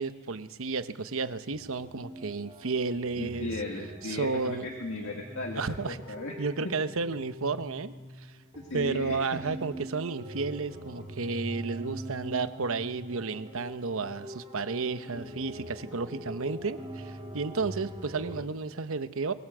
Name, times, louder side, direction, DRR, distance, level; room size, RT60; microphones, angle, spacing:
voice 1, 0.0-3.5 4.0-4.7 5.6-6.0 6.4-7.9 8.7-19.3, right 4 dB, 65° right, 12 dB, 0.9 m, -32 dB
sound 1, 1.5-18.5, equal, 30° right, 2.6 m, -43 dB
voice 2, 3.2-6.3 8.5-9.2, left 2 dB, 60° left, 1 dB, 2.0 m, -36 dB
22.5 x 15.5 x 7.9 m, 1.3 s
head